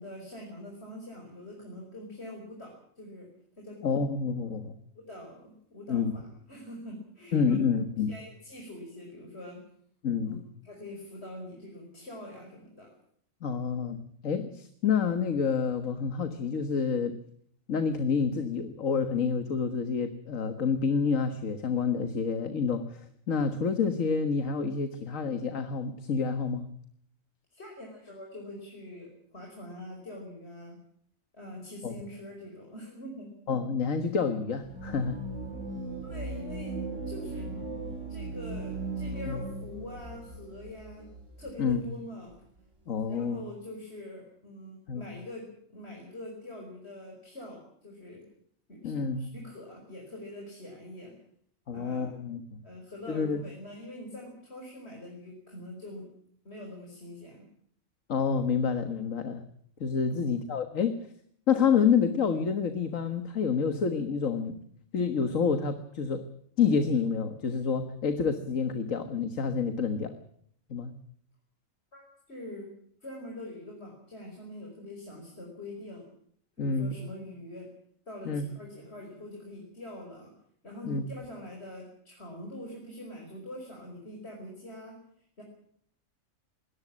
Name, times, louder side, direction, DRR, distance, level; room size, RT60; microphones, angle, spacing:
voice 1, 0.0-3.3 3.6-3.8 4.9-7.6 8.1-9.6 10.2-12.9 27.5-30.8 31.3-33.3 36.0-36.8 37.1-37.5 38.1-41.1 41.4-42.3 43.1-48.2 48.7-51.2 51.7-52.2 52.6-56.1 56.4-57.4 60.1-60.3 71.9-72.0 72.3-72.7 73.0-76.1 76.6-77.7 78.1-80.3 80.6-85.0 85.4-85.5, left 1 dB, 50° left, 0 dB, 5.6 m, -44 dB
voice 2, 3.8-4.7 5.9-6.1 7.3-8.1 10.0-10.4 13.4-17.1 17.7-26.7 31.8-32.0 33.5-35.2 39.3-39.4 41.6-41.8 42.9-43.4 44.9-45.0 48.8-49.3 51.7-52.6 53.1-53.4 58.1-59.4 59.8-61.0 61.5-64.6 64.9-66.3 66.6-70.1 70.7-70.9 76.6-77.0 78.3-78.5 80.9-81.0, left 6 dB, 75° left, 8 dB, 1.8 m, -28 dB
sound 1, 34.6-41.8, right 3 dB, 65° right, 3.5 m, -38 dB
22.0 x 19.0 x 7.4 m, 0.65 s
omnidirectional pair, 1.4 m